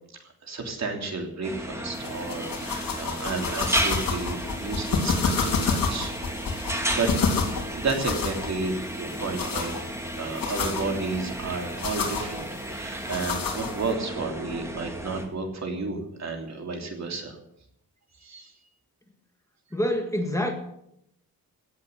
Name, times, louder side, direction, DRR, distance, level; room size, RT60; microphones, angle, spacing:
voice 1, 0.4-6.1 6.5-7.1 7.7-9.7 10.1-17.4 18.2-18.5, right 3 dB, 50° right, 2 dB, 3.3 m, -32 dB
sound 1, 1.4-15.2, right 1 dB, 10° right, 2.1 m, -34 dB
sound 2, 1.9-13.9, left 5 dB, 70° left, 3.6 m, -30 dB
voice 2, 19.7-20.5, left 1 dB, 10° left, 3 dB, 1.7 m, -26 dB
17.5 x 8.3 x 8.2 m, 0.77 s
wide cardioid pair, 160°, 35 cm